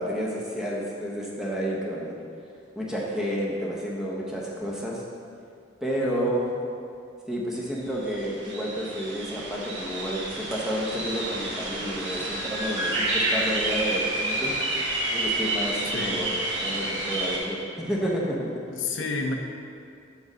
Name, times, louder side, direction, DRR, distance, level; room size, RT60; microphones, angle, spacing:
voice 1, 0.0-2.1 2.8-5.0 5.8-6.5 7.3-14.6 15.1-16.3 16.6-18.6, equal, 5° right, -4 dB, 0.9 m, -30 dB
voice 2, 6.0-6.4 15.8-16.2 18.7-19.3, left 4 dB, 85° left, 3 dB, 0.6 m, -31 dB
sound 1, 7.7-17.4, right 2 dB, 65° right, 1.2 m, -29 dB
5.3 x 4.7 x 6.1 m, 2.4 s
head